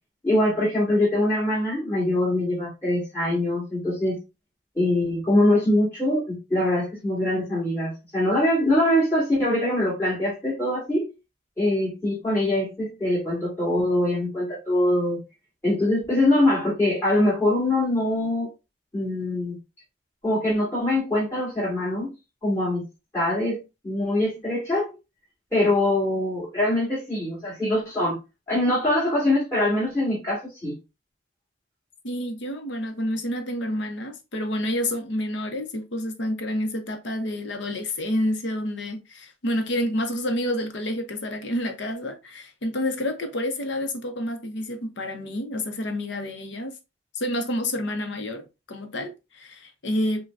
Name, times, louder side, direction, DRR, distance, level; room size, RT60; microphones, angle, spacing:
voice 1, 0.2-4.2 4.7-11.1 11.6-15.2 15.6-18.5 18.9-19.6 20.2-22.1 22.4-22.8 23.1-24.9 25.5-28.2 28.5-30.8, left 1 dB, 15° left, 2.3 m, -23 dB
voice 2, 32.0-46.7 47.1-50.3, left 1 dB, 65° left, 0.8 m, -29 dB
5.3 x 2.2 x 2.5 m
head